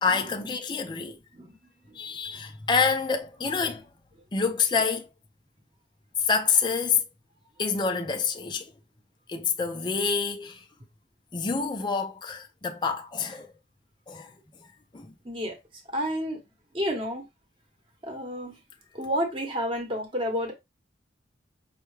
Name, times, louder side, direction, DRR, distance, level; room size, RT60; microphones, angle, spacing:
voice 1, 0.0-1.2 1.9-3.9 4.3-5.1 6.2-7.0 7.6-8.7 9.3-10.6 11.3-13.5 14.1-14.3 14.9-15.1, left 5 dB, 25° left, 0.4 m, -27 dB
voice 2, 15.2-15.6 15.9-16.4 16.7-17.2 18.0-18.6 18.9-20.5, equal, 30° right, 1.0 m, -30 dB
5.4 x 2.2 x 3.1 m
head